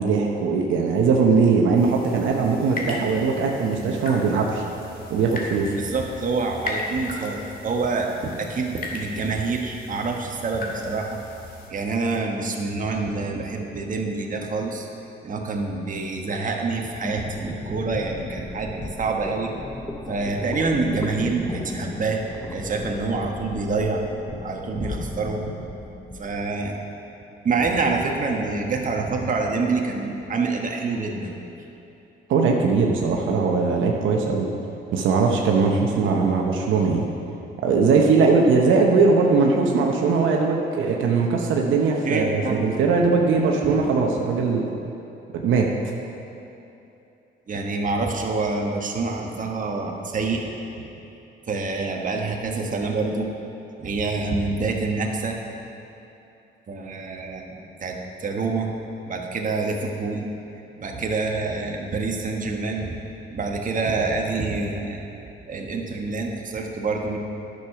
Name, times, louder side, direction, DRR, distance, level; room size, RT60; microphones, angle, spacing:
voice 1, 0.0-4.6 5.1-5.7 32.3-34.5 34.9-37.0 37.6-44.7 45.3-45.7, right 4 dB, 80° right, 0 dB, 1.0 m, -20 dB
sound 1, 1.7-11.7, left 2 dB, 45° left, 1.8 m, -37 dB
voice 2, 5.8-8.1 8.4-11.2 11.7-14.9 15.2-19.5 20.1-22.2 22.5-24.0 24.4-25.5 26.2-26.8 27.4-31.3 42.0-42.7 43.6-43.7 47.5-50.4 50.8-50.9 51.5-53.3 53.8-55.4 56.7-58.7 59.1-60.3 60.8-63.0 63.3-65.0 65.5-67.2, right 3 dB, 40° right, 1 dB, 1.3 m, -26 dB
sound 2, 17.0-26.5, left 2 dB, 15° left, 0.8 m, -36 dB
10.5 x 6.7 x 5.8 m, 2.9 s
cardioid pair, 90°, 20 cm